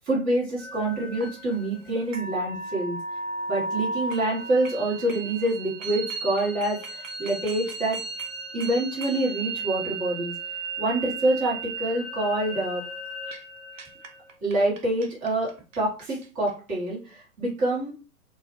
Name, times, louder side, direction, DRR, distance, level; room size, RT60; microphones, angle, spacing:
voice 1, 0.0-3.0 3.5-8.0 8.5-10.3 10.8-12.8 14.4-15.5 15.8-17.9, right 1 dB, 20° right, -5 dB, 1.0 m, -26 dB
sound 1, 0.6-16.5, right 3 dB, 60° right, 0.6 m, -35 dB
2.2 x 2.1 x 2.9 m, 0.35 s
figure-of-eight pair, 115°, 43 cm